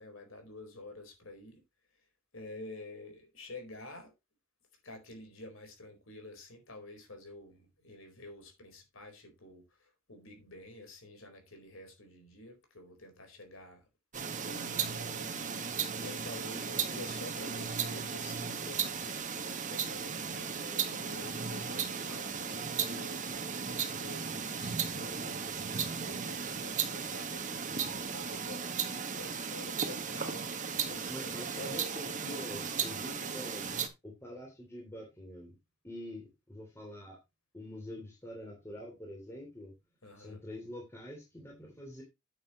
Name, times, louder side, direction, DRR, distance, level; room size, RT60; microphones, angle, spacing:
voice 1, 0.0-1.6 2.3-4.1 4.8-13.8 14.5-19.3 19.6-23.2 23.6-28.7 29.1-30.5 30.8-32.1 40.0-40.4, left 2 dB, 65° left, 4.3 m, -49 dB
sound 1, 14.1-33.9, right 6 dB, 35° right, 1.6 m, -36 dB
voice 2, 31.1-33.7 34.0-35.5 35.8-37.2 37.5-39.7 40.1-42.0, left 1 dB, 10° left, 2.9 m, -45 dB
9.6 x 8.9 x 3.0 m
head